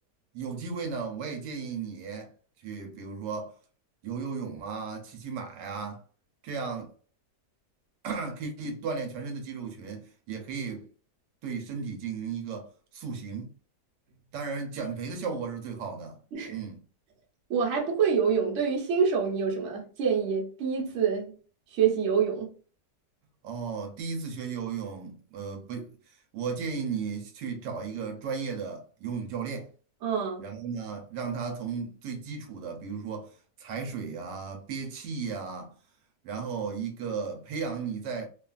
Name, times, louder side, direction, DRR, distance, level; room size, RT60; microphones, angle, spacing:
voice 1, 0.3-2.3 2.6-3.5 4.0-6.0 6.4-6.9 8.0-10.9 11.4-13.5 14.3-16.2 16.5-16.8 23.4-25.9 26.3-29.7 30.4-35.7 36.2-38.3, right 5 dB, 85° right, 1.3 m, -35 dB
voice 2, 17.5-21.3 21.7-22.5 30.0-30.4, right 6 dB, 55° right, 1.0 m, -26 dB
2.9 x 2.4 x 2.3 m
omnidirectional pair, 1.8 m